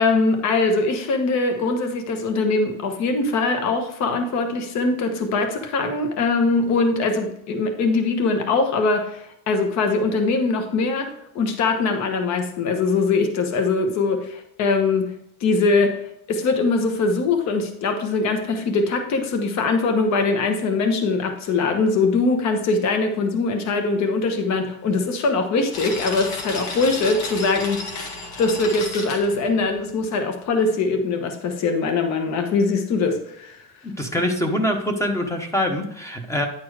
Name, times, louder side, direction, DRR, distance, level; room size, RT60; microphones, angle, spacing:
voice 1, 0.0-11.1 11.3-15.1 15.4-16.0 16.3-27.8 28.4-33.6, left 3 dB, 50° left, 5 dB, 1.2 m, -22 dB
sound 1, 25.7-30.1, left 3 dB, 75° left, 2.0 m, -32 dB
voice 2, 34.0-36.5, left 1 dB, 10° left, 5 dB, 0.8 m, -24 dB
9.9 x 4.3 x 4.8 m, 0.74 s
cardioid pair, 165°, 34 cm